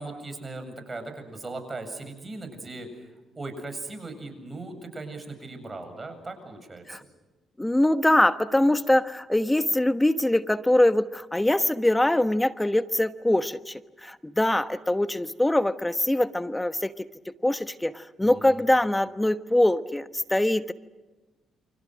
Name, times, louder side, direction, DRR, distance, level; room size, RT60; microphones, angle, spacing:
voice 1, 0.0-2.9 3.3-7.0 18.2-18.7, right 2 dB, 30° right, 7 dB, 7.9 m, -38 dB
voice 2, 7.6-20.7, left 1 dB, 10° left, 12 dB, 1.2 m, -23 dB
29.0 x 25.5 x 6.4 m, 1.2 s
supercardioid pair, 55°, 0 cm